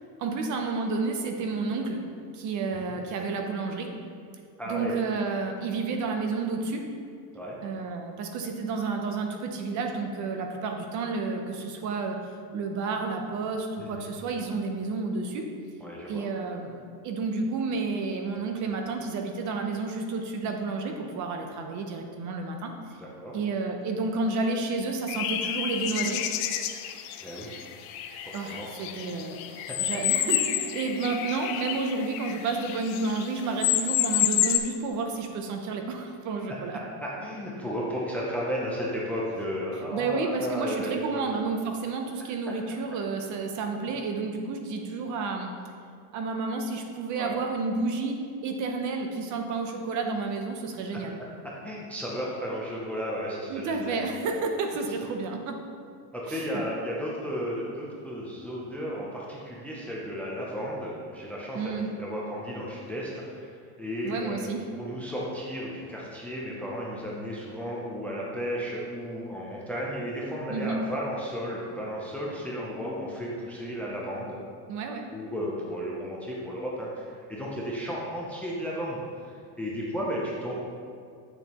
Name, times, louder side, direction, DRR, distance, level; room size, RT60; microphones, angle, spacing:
voice 1, 0.2-2.1 2.3-4.0 4.7-6.9 7.6-15.5 16.1-16.8 17.0-22.7 23.3-26.3 28.3-29.4 29.8-36.8 39.9-45.7 46.1-51.2 53.5-55.7 56.3-56.6 61.5-61.9 64.0-64.7 70.5-70.9 74.7-75.1, right 4 dB, 40° right, 4 dB, 0.7 m, -31 dB
voice 2, 4.6-4.9 7.3-7.6 13.8-14.1 15.8-16.2 23.0-23.3 27.2-27.7 28.3-28.7 29.7-29.8 37.0-41.2 47.2-47.3 51.6-54.0 54.3-54.4 56.1-63.5 63.8-74.3 75.1-80.6, equal, 5° left, -4 dB, 0.5 m, -34 dB
sound 1, 25.1-33.3 33.6-34.6, left 12 dB, 70° left, 0.6 m, -29 dB
8.2 x 6.8 x 2.9 m, 2.3 s
cardioid pair, 155°, 47 cm